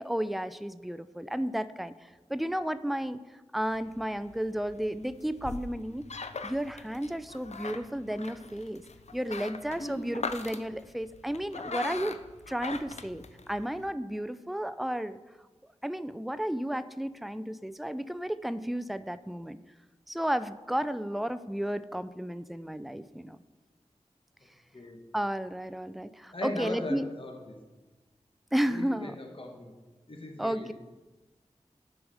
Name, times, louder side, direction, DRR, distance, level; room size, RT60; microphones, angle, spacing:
voice 1, 0.0-3.2 3.5-6.0 6.4-8.8 9.1-12.2 12.5-15.2 15.8-19.6 20.1-23.4 25.1-27.1 28.5-29.1 30.4-30.7, equal, ahead, 13 dB, 0.4 m, -33 dB
sound 1, 3.6-13.9, left 4 dB, 65° left, 0.5 m, -41 dB
voice 2, 26.3-27.5 28.7-29.7 30.1-30.7, left 2 dB, 45° left, 2 dB, 1.3 m, -38 dB
9.9 x 4.8 x 6.4 m, 1.2 s
wide cardioid pair, 45°, 12 cm